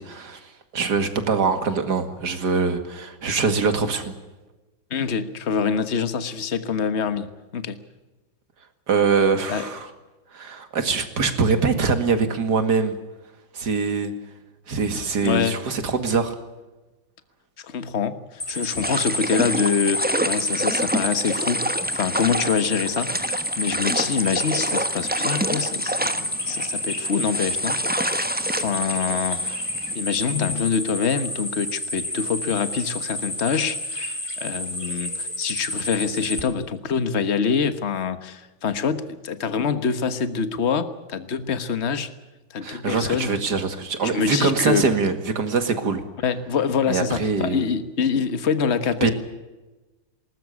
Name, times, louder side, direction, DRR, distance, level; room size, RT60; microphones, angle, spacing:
voice 1, 0.0-4.1 8.9-9.9 10.3-13.0 13.5-14.1 14.7-16.4 42.6-46.0 46.9-47.7 49.0-49.1, right 5 dB, 55° right, 8 dB, 2.6 m, -23 dB
voice 2, 4.9-7.3 7.5-7.8 9.5-9.7 15.2-15.6 17.6-27.8 28.5-29.4 29.9-42.1 42.5-43.4 44.0-44.9 46.2-49.1, left 6 dB, 35° left, 11 dB, 1.4 m, -25 dB
sound 1, 18.4-36.4, left 1 dB, 15° left, 3.2 m, -29 dB
sound 2, 18.8-29.9, right 1 dB, 10° right, 0.6 m, -28 dB
20.5 x 19.0 x 8.3 m, 1.1 s
omnidirectional pair, 2.2 m